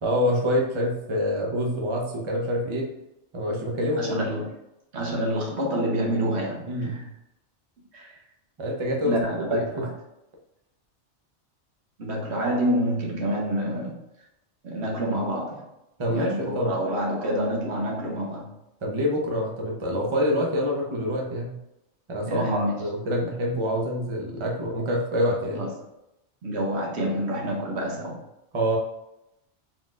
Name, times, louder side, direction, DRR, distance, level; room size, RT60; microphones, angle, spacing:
voice 1, 0.0-2.9 3.3-4.2 6.6-6.9 8.6-9.2 9.5-9.8 16.0-16.7 18.8-21.6 22.1-25.6 28.5-28.8, equal, 30° right, -1 dB, 0.7 m, -26 dB
voice 2, 4.0-4.4 4.9-7.1 7.9-8.1 9.0-9.9 12.0-14.0 14.6-15.6 16.1-18.5 22.3-22.9 25.5-25.7 26.4-28.2, right 1 dB, 70° right, -1 dB, 1.2 m, -27 dB
4.1 x 3.9 x 2.4 m, 0.88 s
omnidirectional pair, 1.2 m